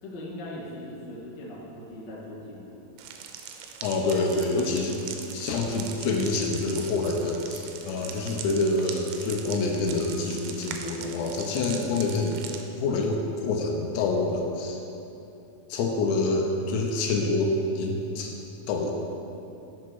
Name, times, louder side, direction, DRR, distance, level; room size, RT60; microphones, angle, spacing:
voice 1, 0.0-2.9, left 1 dB, 50° left, -7 dB, 1.2 m, -40 dB
sound 1, 3.0-12.6, right 7 dB, 85° right, 2.9 m, -41 dB
voice 2, 3.8-5.0 5.3-12.4 12.8-14.8 15.7-18.4 18.7-18.9, left 3 dB, 80° left, 1 dB, 2.8 m, -27 dB
8.5 x 6.4 x 6.0 m, 2.9 s
omnidirectional pair, 5.1 m